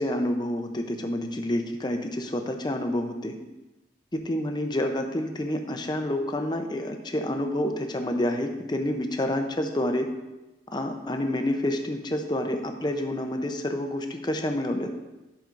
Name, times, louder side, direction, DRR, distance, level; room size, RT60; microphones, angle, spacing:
voice 1, 0.0-3.4 4.1-10.1 10.7-14.9, left 1 dB, 25° left, 4 dB, 0.6 m, -28 dB
11.5 x 6.0 x 2.6 m, 1.0 s
head